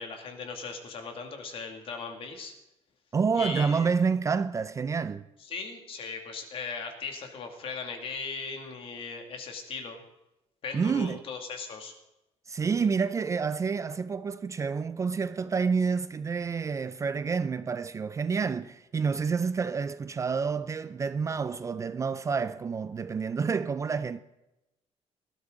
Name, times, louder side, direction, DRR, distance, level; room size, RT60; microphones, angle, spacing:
voice 1, 0.0-2.5 3.4-3.9 5.4-10.0 10.6-11.9, left 5 dB, 50° left, 2.4 m, -38 dB
voice 2, 3.1-5.2 10.7-11.2 12.5-24.2, right 5 dB, 25° right, 0.4 m, -28 dB
18.5 x 13.0 x 3.9 m
cardioid pair, 155°, 12 cm